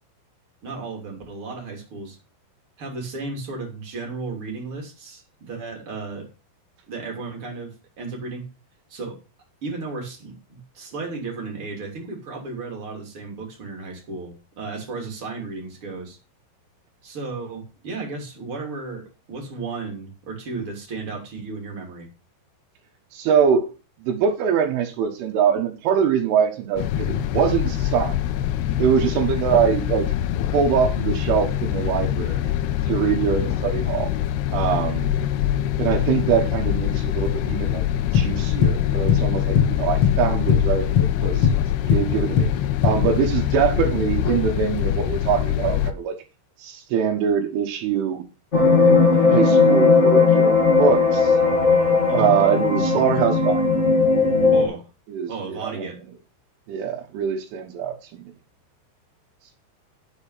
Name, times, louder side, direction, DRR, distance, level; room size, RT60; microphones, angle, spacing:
voice 1, 0.6-2.2 2.8-6.3 6.9-8.4 8.9-9.2 9.6-16.2 17.0-22.1 52.1-52.3 54.5-54.9 55.3-56.0, right 3 dB, 30° right, 1 dB, 3.2 m, -34 dB
voice 2, 23.1-23.7 24.0-28.2 28.8-30.1 30.5-32.5 32.9-34.1 34.5-35.1 35.8-37.9 38.1-41.5 41.9-42.5 42.8-46.2 46.6-48.2 49.3-51.4 52.1-53.6 55.1-56.0 56.7-58.2, right 7 dB, 80° right, 1 dB, 3.7 m, -23 dB
sound 1, 26.8-45.9, left 12 dB, 90° left, 2.3 m, -24 dB
sound 2, 38.1-38.8 39.1-39.3 39.6-40.7 41.0-42.1 42.4-42.9, left 7 dB, 70° left, 1.3 m, -19 dB
sound 3, 48.5-54.6, left 4 dB, 40° left, 0.9 m, -17 dB
10.0 x 7.1 x 5.6 m, 0.31 s
omnidirectional pair, 5.6 m